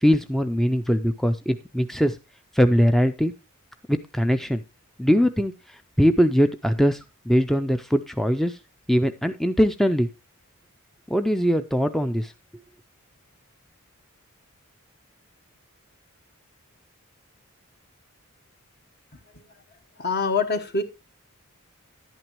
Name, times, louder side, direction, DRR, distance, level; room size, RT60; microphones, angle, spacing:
voice 1, 0.0-2.2 2.5-3.3 3.9-4.6 5.0-8.6 8.9-10.1 11.1-12.3, equal, ahead, 9 dB, 0.4 m, -21 dB
voice 2, 20.0-20.8, left 4 dB, 50° left, 8 dB, 1.2 m, -24 dB
11.0 x 9.0 x 3.0 m, 0.25 s
head